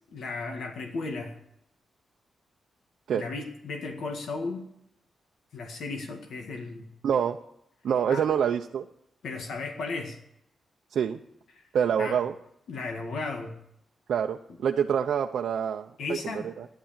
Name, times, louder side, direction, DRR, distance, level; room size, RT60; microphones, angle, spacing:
voice 1, 0.1-1.3 3.1-4.7 5.5-6.9 8.1-8.2 9.2-10.2 11.6-11.7 12.0-12.2 12.7-13.6 16.0-16.5, left 3 dB, 80° left, 2 dB, 2.0 m, -35 dB
voice 2, 7.0-7.4 7.8-8.9 10.9-11.2 11.7-12.3 14.1-16.7, right 8 dB, 75° right, 3 dB, 0.7 m, -26 dB
15.0 x 11.5 x 7.5 m, 0.77 s
wide cardioid pair, 150°, 0 cm